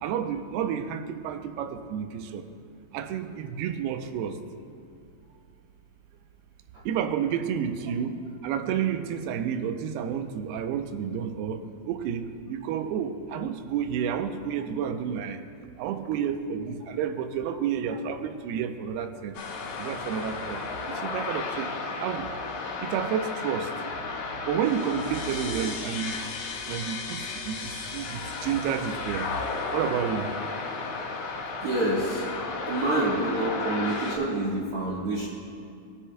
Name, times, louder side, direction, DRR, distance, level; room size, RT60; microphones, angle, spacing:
voice 1, 0.0-2.4 2.9-4.4 6.9-15.4 15.8-19.4 19.8-21.7 22.0-22.3 22.8-23.7 24.5-26.2 26.7-29.3 29.7-30.3, right 8 dB, 80° right, 8 dB, 2.5 m, -30 dB
sound 1, 19.3-34.2, left 4 dB, 75° left, 3.0 m, -34 dB
voice 2, 31.6-32.2 32.7-35.3, right 2 dB, 65° right, -6 dB, 1.4 m, -27 dB
20.0 x 9.9 x 2.2 m, 2.4 s
omnidirectional pair, 4.7 m